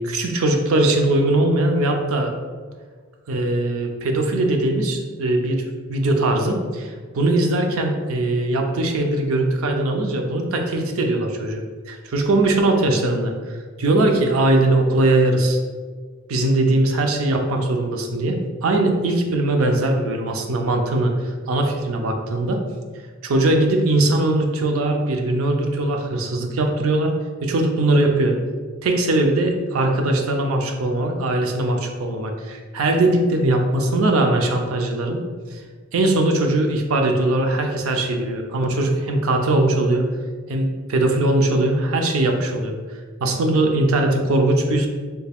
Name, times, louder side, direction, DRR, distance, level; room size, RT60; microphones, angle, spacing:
voice 1, 0.0-2.3 3.3-13.3 13.8-15.6 16.3-21.1 21.5-22.6 23.2-27.1 27.4-28.4 28.8-35.2 35.5-35.6 35.9-40.0 40.5-42.7 43.2-44.9, right 2 dB, 75° right, 4 dB, 0.5 m, -20 dB
3.4 x 3.4 x 2.3 m, 1.5 s
head